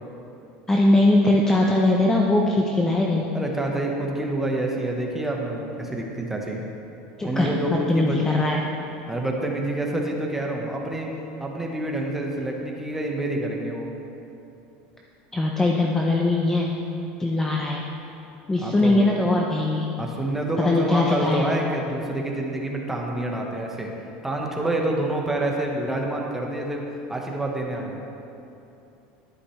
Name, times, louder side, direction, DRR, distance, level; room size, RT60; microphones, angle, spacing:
voice 1, 0.7-3.2 7.2-8.6 15.3-16.7 17.2-17.8 18.5-19.9 20.6-21.5, left 2 dB, 10° left, -1 dB, 0.6 m, -21 dB
voice 2, 3.3-6.6 7.2-7.7 7.9-8.2 9.1-11.1 11.4-13.9 18.6-19.2 20.0-23.9 24.2-26.8 27.1-28.0, right 1 dB, 5° right, 0 dB, 1.1 m, -27 dB
11.0 x 9.7 x 3.2 m, 2.8 s
supercardioid pair, 135°, 4 cm